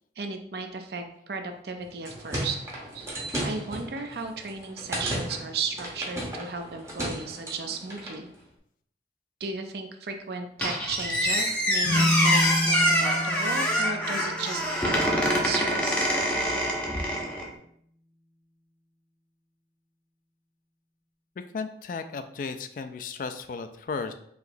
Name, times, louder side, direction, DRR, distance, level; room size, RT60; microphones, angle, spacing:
voice 1, 0.2-2.6 2.9-3.1 3.4-8.3 9.4-15.1 15.4-16.1, right 4 dB, 60° right, 5 dB, 0.5 m, -35 dB
sound 1, 1.8-8.2, right 1 dB, 15° right, 0.9 m, -35 dB
Squeak, 10.6-17.5, equal, 5° left, 0.6 m, -25 dB
sound 2, 11.8-15.4, left 1 dB, 40° right, 1.3 m, -30 dB
voice 2, 21.5-24.1, left 4 dB, 50° left, 9 dB, 0.3 m, -34 dB
4.8 x 2.9 x 2.6 m, 0.68 s
head